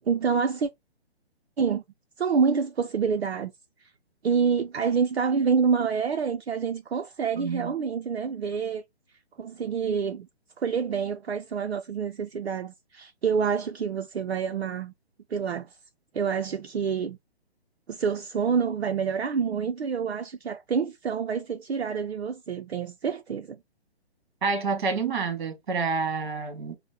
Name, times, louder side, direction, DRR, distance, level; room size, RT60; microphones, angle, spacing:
voice 1, 0.1-0.7 1.6-1.8 2.2-3.5 3.8-3.9 4.2-8.8 9.4-10.3 10.6-14.9 15.3-15.7 16.1-17.2 17.9-23.6, right 6 dB, 70° right, 0.6 m, -27 dB
voice 2, 7.4-7.7 24.4-26.8, right 4 dB, 50° right, 1.5 m, -28 dB
6.2 x 2.1 x 2.9 m
figure-of-eight pair, 135°, 33 cm